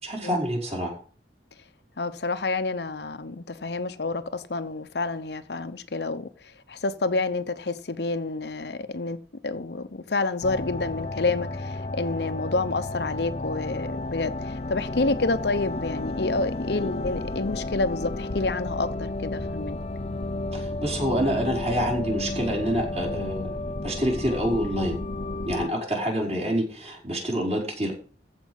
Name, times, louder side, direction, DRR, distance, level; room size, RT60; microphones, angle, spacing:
voice 1, 0.0-0.9 16.8-16.9 20.5-23.6 23.8-25.0 25.5-27.9, equal, 35° right, 5.5 m, -27 dB
voice 2, 2.0-6.3 6.7-9.2 9.4-19.8, left 3 dB, 65° left, 0.8 m, -28 dB
sound 1, 10.4-25.7, left 2 dB, 35° left, 0.6 m, -32 dB
14.5 x 5.3 x 8.2 m
head